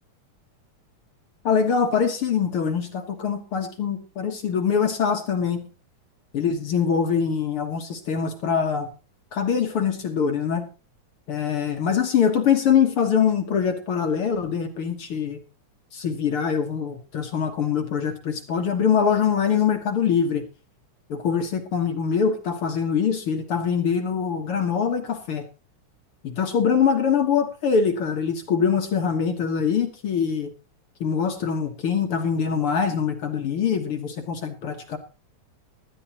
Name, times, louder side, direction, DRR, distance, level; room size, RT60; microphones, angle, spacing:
voice 1, 1.4-5.7 6.3-8.9 9.3-10.7 11.3-15.4 15.9-20.4 21.1-25.4 26.2-30.5 31.0-35.0, left 7 dB, 55° left, 6 dB, 1.9 m, -23 dB
18.5 x 12.0 x 2.9 m, 0.32 s
omnidirectional pair, 3.5 m